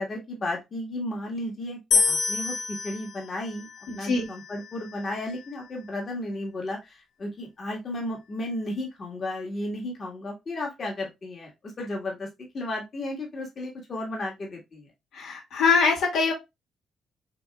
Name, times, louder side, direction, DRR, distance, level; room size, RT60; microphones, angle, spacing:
voice 1, 0.0-3.7 3.9-14.9, left 1 dB, 45° left, -1 dB, 1.6 m, -34 dB
sound 1, 1.9-5.1, left 5 dB, 65° left, 1.0 m, -28 dB
voice 2, 3.9-4.3 15.1-16.3, left 4 dB, 85° left, -2 dB, 2.0 m, -23 dB
6.5 x 2.9 x 2.3 m, 0.21 s
cardioid pair, 90°, 0 cm